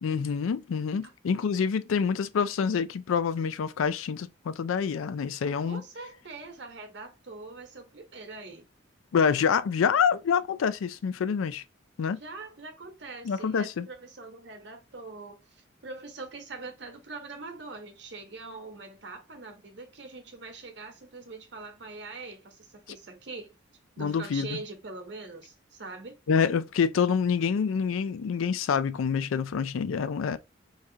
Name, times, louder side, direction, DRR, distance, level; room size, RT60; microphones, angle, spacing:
voice 1, 0.0-5.8 9.1-11.6 12.0-12.2 13.2-13.9 24.0-24.5 26.3-30.4, left 6 dB, 85° left, 0.4 m, -27 dB
voice 2, 5.6-8.7 12.2-23.5 23.9-26.2, right 3 dB, 60° right, 1.0 m, -43 dB
4.7 x 2.4 x 2.7 m
head